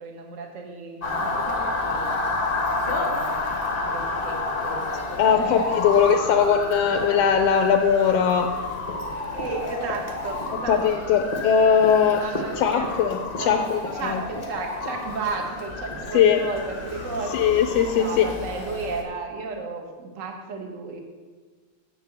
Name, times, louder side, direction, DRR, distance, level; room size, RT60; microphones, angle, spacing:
voice 1, 0.0-2.2 2.5-3.4 3.8-4.8 5.2-5.9 9.3-11.2 12.1-12.9 13.4-17.6 18.0-21.0, right 4 dB, 50° right, 3 dB, 0.9 m, -34 dB
Motor vehicle (road) / Siren, 1.0-19.0, left 2 dB, 60° left, 0.5 m, -30 dB
voice 2, 5.2-8.5 10.7-12.2 12.6-14.2 16.1-16.4 17.3-18.3, left 7 dB, 80° left, 6 dB, 1.4 m, -20 dB
7.4 x 7.1 x 7.9 m, 1.4 s
omnidirectional pair, 3.3 m